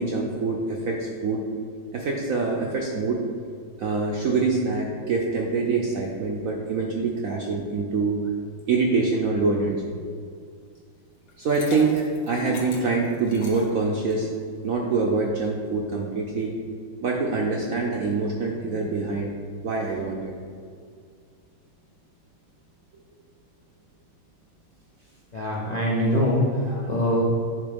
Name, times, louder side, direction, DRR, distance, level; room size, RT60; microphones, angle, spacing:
voice 1, 0.0-1.4 1.9-3.2 3.8-8.2 8.7-9.9 11.4-14.3 14.6-16.5 17.0-19.3 19.6-20.3 26.7-26.9, right 3 dB, 70° right, -1 dB, 0.8 m, -25 dB
Liquid, 11.3-14.4, left 3 dB, 70° left, 1.7 m, -41 dB
voice 2, 25.3-27.2, equal, 90° left, -4 dB, 0.3 m, -23 dB
9.3 x 3.7 x 5.2 m, 2.2 s
omnidirectional pair, 2.2 m